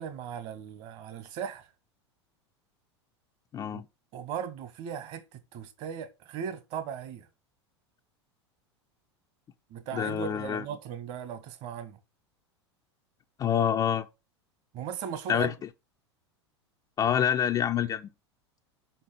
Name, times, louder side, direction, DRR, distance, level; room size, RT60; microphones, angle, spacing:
voice 1, 0.0-1.7 3.7-3.8 4.1-7.3 9.7-12.0 14.7-15.5, right 8 dB, 45° right, 1.5 m, -38 dB
voice 2, 3.5-3.8 9.9-10.6 13.4-14.1 15.3-15.5 17.0-18.1, left 9 dB, 25° left, 0.6 m, -26 dB
5.9 x 5.7 x 5.2 m
figure-of-eight pair, 85°, 15 cm